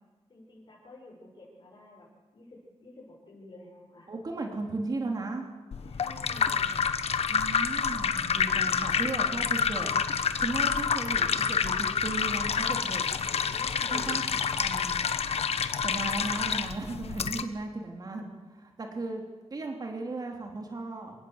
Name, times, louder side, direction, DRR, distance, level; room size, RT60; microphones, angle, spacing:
voice 1, 0.3-2.1 2.3-4.1 4.4-4.5 5.8-6.9 13.2-14.2, left 1 dB, 45° left, -4 dB, 6.6 m, -50 dB
voice 2, 4.1-5.5 7.3-9.9 10.4-13.1 13.8-15.0 15.8-19.2 19.5-21.1, right 3 dB, 35° right, 2 dB, 3.2 m, -36 dB
sound 1, 5.7-17.4, left 6 dB, 70° left, 1.3 m, -28 dB
27.0 x 17.0 x 8.1 m, 1.3 s
wide cardioid pair, 165°, 11 cm